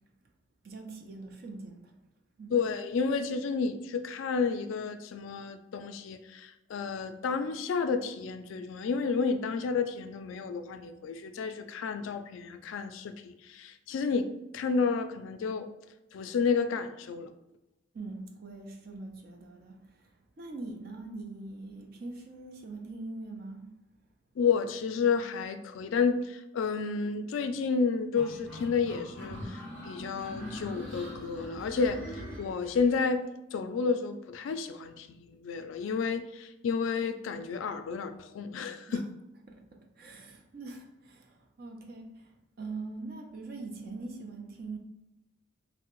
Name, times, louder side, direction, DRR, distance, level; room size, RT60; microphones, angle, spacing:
voice 1, 0.6-1.9 2.4-2.6 17.9-20.0 20.4-23.7 38.9-39.0 39.5-42.3 42.6-44.8, right 3 dB, 50° right, 0.5 m, -42 dB
voice 2, 2.5-14.3 14.5-15.7 16.1-17.3 24.4-33.2 33.5-39.0, left 5 dB, 75° left, 0.3 m, -31 dB
sound 1, 28.2-33.0, left 1 dB, 5° right, 1.4 m, -42 dB
3.3 x 2.1 x 3.0 m
head